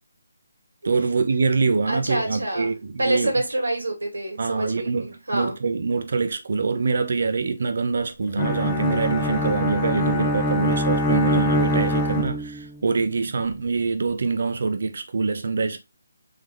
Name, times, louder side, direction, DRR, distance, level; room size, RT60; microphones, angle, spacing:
voice 1, 0.8-3.3 4.4-15.8, right 4 dB, 55° right, 0.7 m, -24 dB
voice 2, 1.9-2.7 3.0-5.5, right 1 dB, 85° right, 2.2 m, -26 dB
Bowed string instrument, 8.4-12.8, equal, 15° left, 0.7 m, -24 dB
3.9 x 3.2 x 3.3 m
figure-of-eight pair, 160°, 0 cm